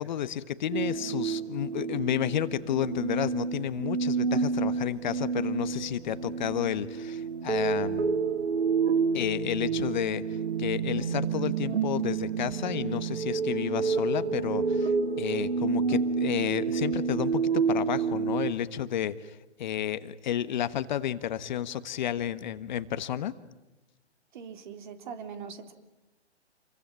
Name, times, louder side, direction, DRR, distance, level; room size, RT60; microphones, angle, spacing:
voice 1, 0.0-8.2 9.1-23.3, left 10 dB, 45° left, 14 dB, 1.3 m, -31 dB
sound 1, 0.7-18.5, right 5 dB, 75° right, 2.4 m, -29 dB
voice 2, 24.3-25.7, right 6 dB, 45° right, 9 dB, 3.3 m, -41 dB
28.5 x 23.0 x 9.0 m, 1.0 s
figure-of-eight pair, 135°, 33 cm